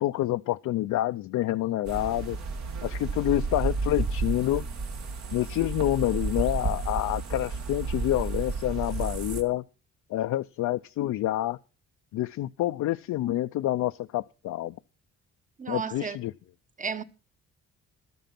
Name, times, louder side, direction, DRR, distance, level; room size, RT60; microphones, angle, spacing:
voice 1, 0.0-2.4 2.8-4.6 5.3-9.6 10.1-11.6 12.1-14.7 15.7-16.3, left 14 dB, 70° left, 0.6 m, -28 dB
sound 1, 1.8-9.4, right 4 dB, 65° right, 2.0 m, -32 dB
voice 2, 15.6-16.2 16.8-17.0, right 6 dB, 25° right, 1.0 m, -32 dB
12.5 x 9.2 x 5.9 m
cardioid pair, 90°, 30 cm